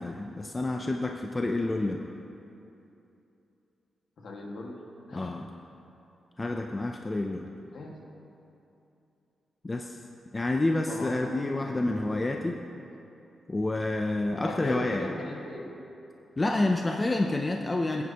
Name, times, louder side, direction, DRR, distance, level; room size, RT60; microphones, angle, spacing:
voice 1, 0.0-2.1 5.1-5.5 6.4-7.5 9.6-10.0 10.3-12.6 13.5-15.1 16.4-18.0, left 2 dB, 15° left, 2 dB, 0.4 m, -28 dB
voice 2, 4.2-4.8 5.1-5.4 7.7-8.0 10.9-12.3 14.4-15.7, left 2 dB, 55° left, -1 dB, 1.7 m, -39 dB
21.0 x 9.4 x 2.9 m, 2.8 s
wide cardioid pair, 180°, 0 cm